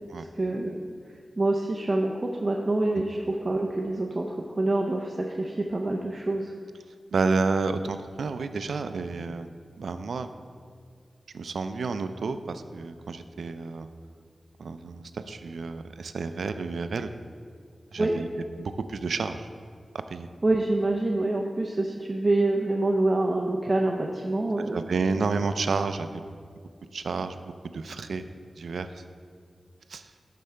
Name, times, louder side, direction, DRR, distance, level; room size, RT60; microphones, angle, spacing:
voice 1, 0.2-0.8 1.4-6.5 18.0-18.1 20.4-25.2, right 2 dB, 35° right, 0 dB, 0.5 m, -26 dB
voice 2, 7.1-9.5 9.8-10.3 11.3-13.9 14.6-17.1 17.9-18.3 18.6-19.5 20.1-20.3 24.7-26.2 26.9-28.2 28.6-29.0 29.9-30.0, right 4 dB, 90° right, 10 dB, 0.3 m, -30 dB
12.0 x 4.6 x 3.3 m, 2.1 s
wide cardioid pair, 80°, 0 cm